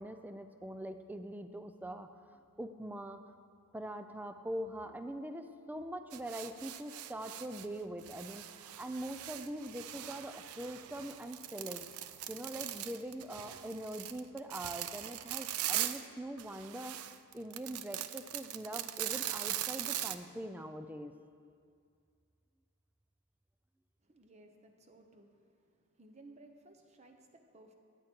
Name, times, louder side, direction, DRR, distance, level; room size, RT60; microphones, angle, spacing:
voice 1, 0.0-3.3 3.7-11.9 12.3-17.1 17.3-21.1, right 1 dB, 5° right, 9 dB, 0.4 m, -43 dB
sound 1, 6.1-7.7 8.0-16.1 16.4-20.2, right 12 dB, 75° right, 0.5 m, -40 dB
voice 2, 24.0-27.7, right 2 dB, 30° right, 5 dB, 0.8 m, -59 dB
13.5 x 9.1 x 4.5 m, 2.3 s
head